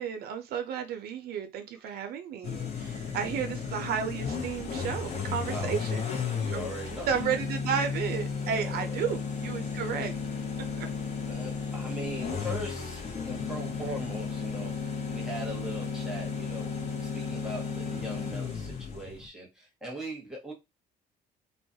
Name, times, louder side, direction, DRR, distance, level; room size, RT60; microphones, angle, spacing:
voice 1, 0.0-6.0 6.5-6.7 7.1-10.1 10.8-10.9, right 7 dB, 70° right, 0.5 m, -32 dB
sound 1, 2.4-19.3, left 5 dB, 40° left, 0.7 m, -34 dB
voice 2, 5.4-5.7 6.3-7.2 8.4-9.0 11.2-20.5, right 1 dB, 5° right, 1.0 m, -40 dB
2.3 x 2.1 x 2.7 m
cardioid pair, 110°, 17 cm